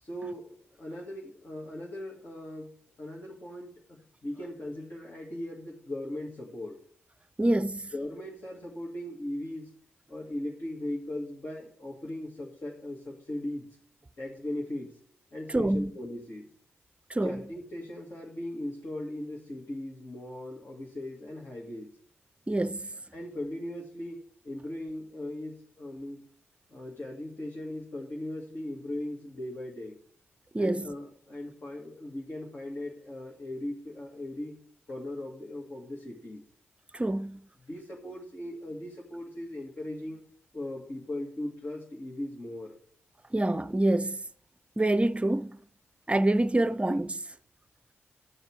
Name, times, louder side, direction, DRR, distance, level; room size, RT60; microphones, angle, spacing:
voice 1, 0.0-6.8 7.9-9.7 10.1-13.7 14.2-15.0 15.3-16.5 17.2-21.9 23.1-26.3 26.7-30.0 30.6-34.6 34.9-36.4 37.7-40.2 40.5-42.8, left 1 dB, 45° left, 2.4 m, -38 dB
voice 2, 7.4-7.9 15.5-15.9 17.1-17.4 22.5-22.9 30.5-30.9 36.9-37.4 43.3-44.2 44.8-45.6 46.1-47.2, right 1 dB, 20° right, 0.7 m, -26 dB
12.0 x 6.6 x 4.8 m
supercardioid pair, 40°, 5 cm